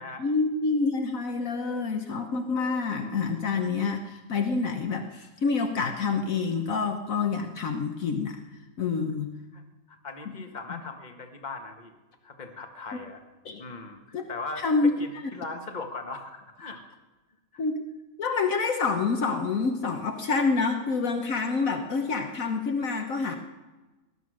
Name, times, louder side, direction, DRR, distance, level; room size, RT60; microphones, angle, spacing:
voice 1, 0.2-8.4 8.8-9.3 13.4-13.6 14.1-14.2 14.6-14.9 17.6-17.8 18.2-23.3, left 4 dB, 65° left, 4 dB, 1.5 m, -27 dB
voice 2, 9.9-12.0 12.2-13.2 13.6-14.7 15.0-16.8 17.5-17.6, left 3 dB, 30° left, 4 dB, 1.6 m, -39 dB
19.0 x 11.5 x 6.4 m, 1.1 s
omnidirectional pair, 1.6 m